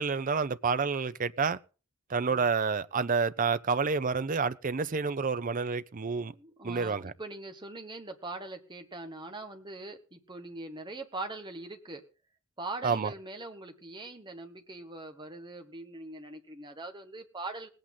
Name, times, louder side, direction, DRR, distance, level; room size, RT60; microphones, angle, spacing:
voice 1, 0.0-1.6 2.1-6.3 6.6-7.1 12.8-13.1, right 5 dB, 40° right, 0.6 m, -29 dB
voice 2, 6.3-12.0 12.6-17.7, right 2 dB, 20° right, 1.5 m, -42 dB
19.0 x 8.7 x 3.8 m
head